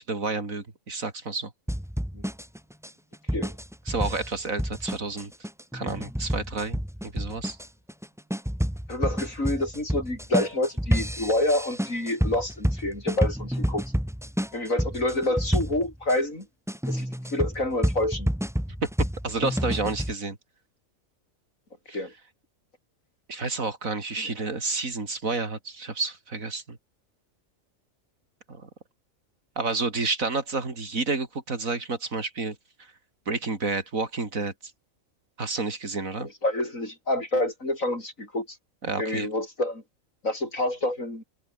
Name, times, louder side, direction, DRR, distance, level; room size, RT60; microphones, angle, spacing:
voice 1, 0.0-1.5 3.9-5.3 5.7-7.6 18.8-20.4 21.9-22.0 23.3-26.8 28.5-28.7 29.6-32.9 33.3-34.5 35.4-36.3 38.8-39.3, right 3 dB, 80° right, 3.8 m, -30 dB
sound 1, 1.7-16.2 16.7-20.1, equal, ahead, 2.6 m, -29 dB
voice 2, 8.9-13.8 14.5-16.5 16.9-18.3 21.9-22.1 24.2-24.3 36.2-38.6 39.0-39.8 40.2-41.2, left 1 dB, 75° left, 8.5 m, -28 dB
omnidirectional pair, 1.4 m